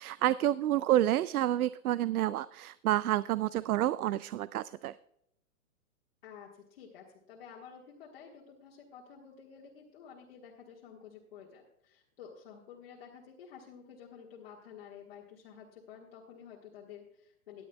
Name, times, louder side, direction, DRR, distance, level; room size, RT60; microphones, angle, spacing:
voice 1, 0.0-5.0, right 13 dB, 80° right, 17 dB, 0.5 m, -29 dB
voice 2, 0.7-1.1 6.2-17.6, left 7 dB, 40° left, -3 dB, 1.7 m, -51 dB
17.5 x 10.5 x 2.3 m, 0.79 s
hypercardioid pair, 170°, 43 cm